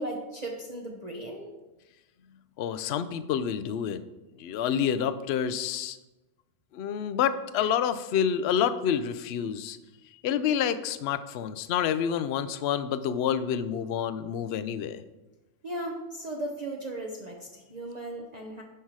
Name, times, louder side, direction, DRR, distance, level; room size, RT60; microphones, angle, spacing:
voice 1, 0.0-1.5 15.6-18.6, right 1 dB, 35° right, -1 dB, 1.0 m, -36 dB
voice 2, 2.6-4.0 4.4-6.0 6.7-9.8 10.2-15.0, left 8 dB, 60° left, 13 dB, 0.7 m, -28 dB
10.0 x 5.8 x 4.7 m, 1.1 s
omnidirectional pair, 1.4 m